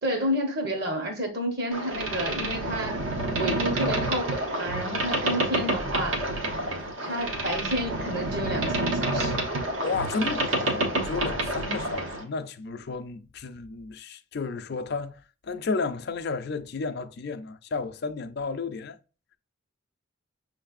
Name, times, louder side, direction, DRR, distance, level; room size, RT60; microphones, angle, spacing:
voice 1, 0.0-3.0 3.3-6.2 7.0-9.4, equal, 55° right, 1.1 m, -30 dB
Boat Water vehicle, 1.7-12.2, right 1 dB, 80° right, 1.1 m, -28 dB
voice 2, 9.8-19.0, left 4 dB, 50° left, 0.4 m, -32 dB
6.4 x 3.3 x 2.4 m
head